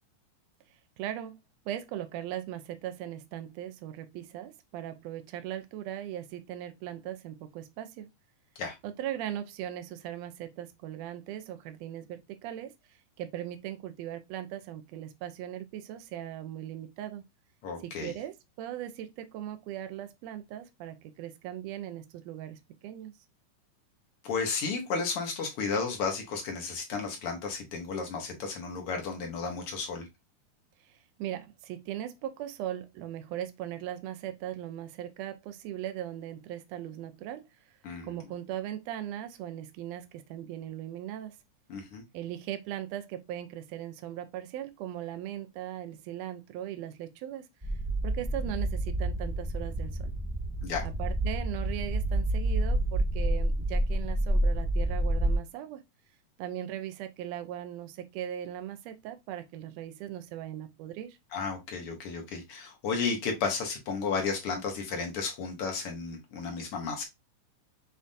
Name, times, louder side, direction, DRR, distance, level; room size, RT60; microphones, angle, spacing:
voice 1, 1.0-8.1 8.8-17.2 17.8-23.1 30.8-37.4 38.0-41.4 42.1-47.5 48.0-50.1 50.8-55.8 56.4-61.2, right 11 dB, 90° right, 1.5 m, -39 dB
voice 2, 17.6-18.1 24.2-30.1 37.8-38.1 41.7-42.0 50.6-50.8 61.3-67.0, left 5 dB, 60° left, 1.6 m, -33 dB
sound 1, 47.6-55.3, right 1 dB, 30° right, 0.6 m, -29 dB
7.2 x 2.6 x 2.6 m
omnidirectional pair, 3.6 m